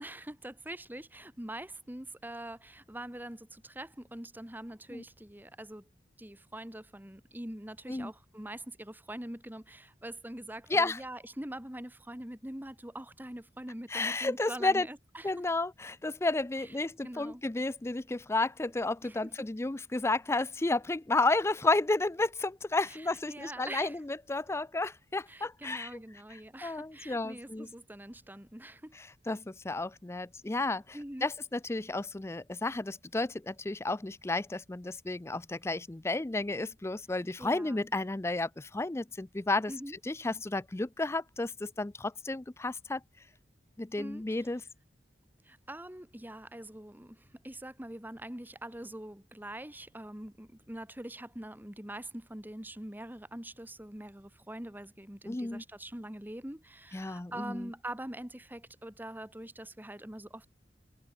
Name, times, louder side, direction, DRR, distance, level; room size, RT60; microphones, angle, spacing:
voice 1, 0.0-5.9 6.2-15.3 16.6-16.8 17.0-17.4 19.0-19.5 22.9-24.0 25.3-28.9 30.9-31.3 37.4-37.9 39.7-40.0 44.0-44.5 45.4-60.5, right 1 dB, 10° right, 1.7 m, -44 dB
voice 2, 13.9-14.9 15.2-25.9 26.6-27.7 29.3-39.7 40.1-43.0 43.8-44.6 55.3-55.6 56.9-57.7, left 2 dB, 15° left, 0.5 m, -32 dB
head